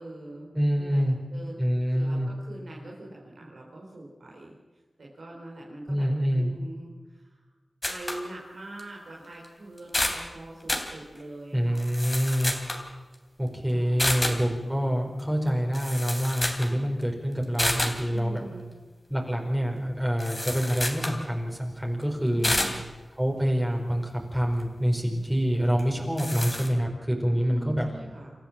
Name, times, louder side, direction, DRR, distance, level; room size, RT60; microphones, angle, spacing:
voice 1, 0.0-1.6 1.9-4.5 5.0-6.1 6.3-7.4 7.8-12.1 13.7-14.3 18.1-18.7 22.3-22.8 27.3-28.3, right 2 dB, 80° right, -3 dB, 4.6 m, -43 dB
voice 2, 0.5-1.2 1.6-2.3 5.9-6.5 11.5-12.5 13.4-18.4 19.1-22.5 23.2-27.8, equal, 10° right, 0 dB, 4.9 m, -26 dB
sound 1, 7.8-8.2 8.8-8.9 9.4-9.5 9.8-10.2 10.7-10.9 11.7-12.9 14.0-14.4 15.5-15.6 15.7-16.7 17.0-17.1 17.6-18.0 20.2-21.2 22.4-22.8 25.8-25.9 26.2-26.7, left 1 dB, 20° left, 3.2 m, -29 dB
28.0 x 14.0 x 7.5 m, 1.3 s
wide cardioid pair, 60°, 0 cm